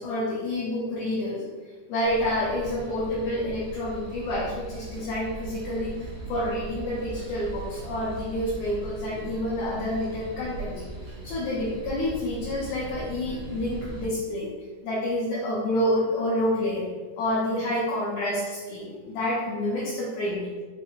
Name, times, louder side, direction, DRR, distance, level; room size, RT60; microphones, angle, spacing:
voice 1, 0.0-5.9 6.3-14.5 14.8-16.9 17.2-20.4, left 1 dB, 75° left, -7 dB, 1.9 m, -28 dB
sound 1, 2.0-14.1, right 3 dB, 85° right, 1.4 m, -39 dB
5.5 x 2.0 x 2.9 m, 1.4 s
omnidirectional pair, 3.7 m